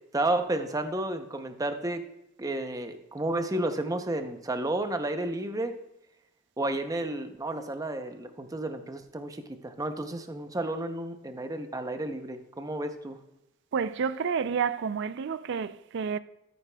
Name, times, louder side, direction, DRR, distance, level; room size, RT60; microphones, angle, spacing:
voice 1, 0.1-2.0 2.4-5.7 6.6-13.2, right 1 dB, 15° right, 0.6 m, -31 dB
voice 2, 13.7-16.2, right 6 dB, 60° right, 0.4 m, -29 dB
13.0 x 9.2 x 2.3 m
head